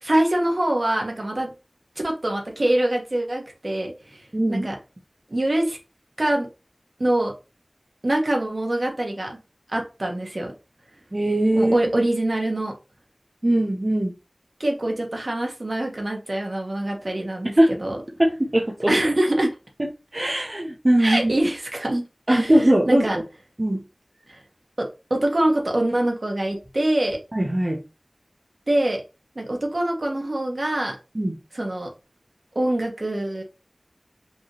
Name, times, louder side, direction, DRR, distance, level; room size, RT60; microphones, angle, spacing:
voice 1, 0.0-1.5 2.0-4.8 5.3-5.8 6.2-6.5 7.0-7.3 8.0-9.4 9.7-10.5 11.5-12.7 14.6-18.0 18.9-19.5 21.0-22.5 22.9-23.2 24.3-24.4 24.8-27.2 28.7-29.0 29.3-31.0 31.5-31.9 32.5-33.4, right 1 dB, 65° right, 1.4 m, -24 dB
voice 2, 4.3-4.7 11.1-11.7 13.4-14.1 17.6-17.7 18.2-18.9 19.8-21.3 22.3-23.2 23.6-23.8 27.3-27.8 31.1-31.4, right 1 dB, 45° right, 0.9 m, -20 dB
5.3 x 3.2 x 3.0 m
wide cardioid pair, 40°, 0 cm